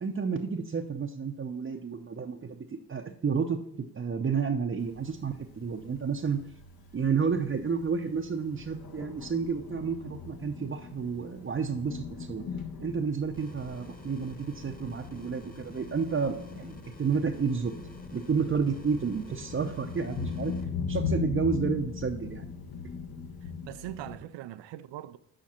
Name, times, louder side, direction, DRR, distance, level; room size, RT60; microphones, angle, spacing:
voice 1, 0.0-6.4 6.9-12.4 12.8-17.7 18.1-20.5 20.9-22.4 22.8-22.9, right 5 dB, 30° right, 0.7 m, -31 dB
Thunder, 4.8-24.2, left 5 dB, 55° left, 1.1 m, -40 dB
sound 1, 13.3-20.6, left 2 dB, 20° left, 1.3 m, -49 dB
voice 2, 23.4-25.2, right 12 dB, 80° right, 0.5 m, -41 dB
7.4 x 5.1 x 4.3 m
supercardioid pair, 45°, 43 cm